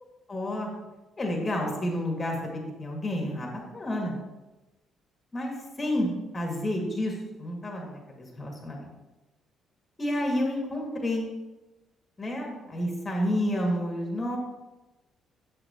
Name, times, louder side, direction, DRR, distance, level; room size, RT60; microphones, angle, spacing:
voice 1, 0.3-0.7 1.2-4.2 5.3-8.9 10.0-11.2 12.2-14.4, left 1 dB, 25° left, 0 dB, 2.0 m, -30 dB
8.0 x 6.8 x 2.9 m, 1.1 s
cardioid pair, 95°, 0 cm